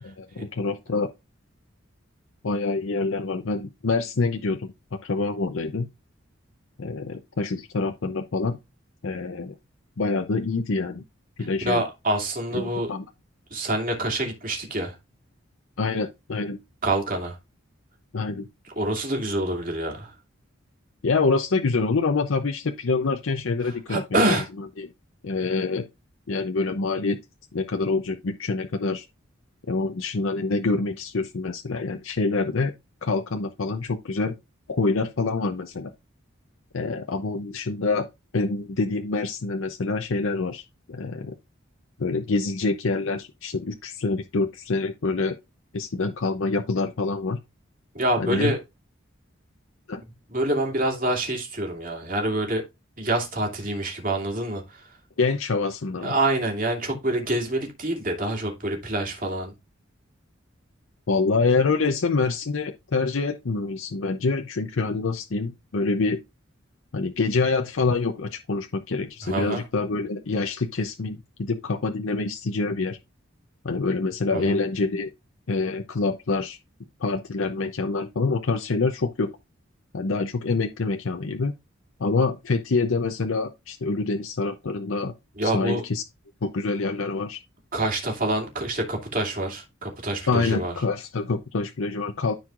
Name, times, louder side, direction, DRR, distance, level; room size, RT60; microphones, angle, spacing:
voice 1, 0.0-1.1 2.4-5.9 6.8-8.6 9.0-9.5 10.0-11.0 11.4-11.8 12.5-13.1 15.8-16.6 18.1-18.5 21.0-24.0 24.3-24.4 24.8-24.9 25.2-25.8 26.3-27.2 27.5-29.1 29.7-32.7 33.0-34.4 34.7-35.9 36.7-38.1 38.3-41.3 42.0-45.4 45.7-47.4 48.2-48.5 49.9-50.0 55.2-56.1 61.1-66.2 66.9-73.0 73.6-75.1 75.5-76.6 77.0-79.3 79.9-81.5 82.0-85.1 85.4-86.0 86.4-87.4 90.3-92.3, left 3 dB, 80° left, 0.7 m, -26 dB
voice 2, 11.6-12.9 13.5-14.9 16.8-17.4 18.8-20.1 23.9-24.5 47.9-48.6 50.3-52.6 53.0-54.8 56.0-59.5 69.2-69.6 74.3-74.5 85.4-85.8 87.7-90.7, right 1 dB, 45° right, 2.5 m, -26 dB
13.5 x 4.6 x 2.5 m
head